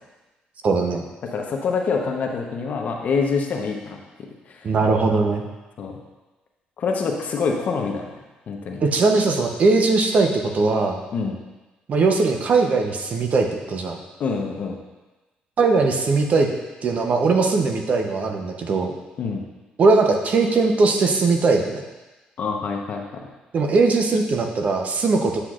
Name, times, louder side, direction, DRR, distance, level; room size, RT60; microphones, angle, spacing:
voice 1, 0.6-1.0 4.6-5.4 8.8-11.0 11.9-14.0 15.6-16.5 16.8-18.9 19.8-21.8 23.5-25.4, right 3 dB, 50° right, 3 dB, 0.8 m, -20 dB
voice 2, 1.2-4.0 4.5-4.6 5.8-5.9 6.8-8.1 8.5-8.8 11.1-11.4 14.2-14.8 19.2-19.4 22.4-23.0, left 5 dB, 55° left, 2 dB, 0.9 m, -25 dB
7.8 x 5.9 x 2.5 m, 1.1 s
cardioid pair, 90°, 3 cm